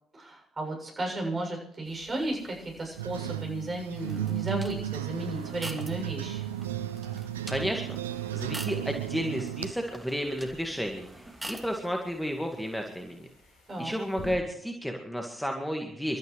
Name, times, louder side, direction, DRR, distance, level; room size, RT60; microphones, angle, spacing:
voice 1, 0.1-6.4 13.7-13.9, right 1 dB, 30° right, 1 dB, 7.2 m, -34 dB
sound 1, 1.8-14.4, left 1 dB, 65° left, 4.5 m, -54 dB
sound 2, 3.0-9.7, right 12 dB, 80° right, 0.5 m, -34 dB
sound 3, 4.0-11.8, right 1 dB, 10° right, 2.6 m, -46 dB
voice 2, 7.5-8.0 8.3-13.2 13.8-16.2, equal, 5° left, 3 dB, 2.0 m, -32 dB
28.5 x 13.0 x 3.3 m, 0.72 s
figure-of-eight pair, 50°, 0 cm